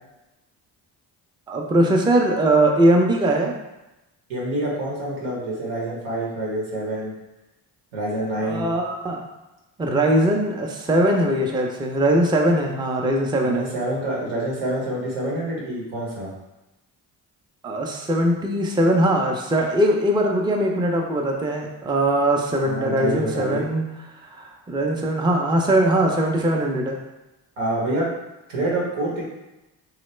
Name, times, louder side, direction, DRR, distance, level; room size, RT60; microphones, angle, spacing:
voice 1, 1.5-3.5 8.4-9.3 9.8-13.7 17.6-23.9 24.2-27.0, right 1 dB, 10° right, 1 dB, 0.4 m, -21 dB
voice 2, 4.3-7.1 7.9-8.7 13.4-16.3 22.6-23.6 27.6-28.1 28.5-29.3, right 1 dB, 90° right, -4 dB, 1.0 m, -27 dB
3.1 x 2.1 x 3.1 m, 1.0 s
supercardioid pair, 55°, 46 cm